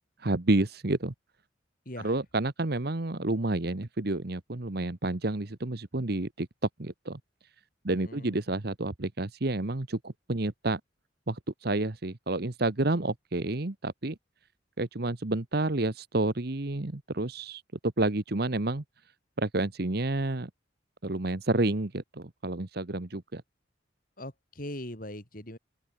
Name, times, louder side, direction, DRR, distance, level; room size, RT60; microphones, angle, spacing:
voice 1, 0.2-1.1 2.0-6.5 6.8-7.2 7.8-10.8 11.3-14.2 14.8-18.8 19.4-20.5 21.0-23.4, right 2 dB, 55° right, 1.2 m, -30 dB
voice 2, 1.8-2.2 7.9-8.4 24.2-25.6, left 1 dB, 45° left, 6.3 m, -41 dB
head